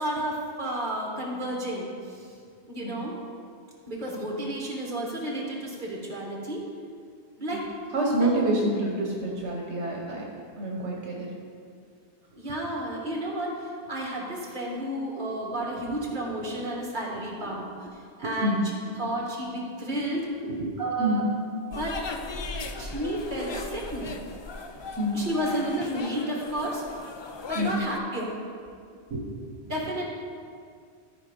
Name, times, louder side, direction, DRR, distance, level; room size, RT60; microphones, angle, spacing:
voice 1, 0.0-2.3 2.7-3.2 3.9-6.6 7.4-7.6 8.2-8.3 12.4-17.9 18.2-18.6 19.0-20.2 20.8-21.2 21.7-22.0 22.8-24.1 25.1-26.8 27.5-28.3 29.7-30.0, right 1 dB, 45° right, -2 dB, 1.9 m, -31 dB
voice 2, 7.9-10.2 10.6-11.3 18.4-18.6 20.5-20.6 21.0-21.2 22.6-22.7 25.0-25.2 27.6-27.8 29.1-29.3, right 1 dB, 75° right, -2 dB, 1.5 m, -27 dB
sound 1, 21.7-28.0, left 3 dB, 45° left, 0.3 m, -37 dB
13.5 x 4.9 x 5.2 m, 2.2 s
omnidirectional pair, 1.1 m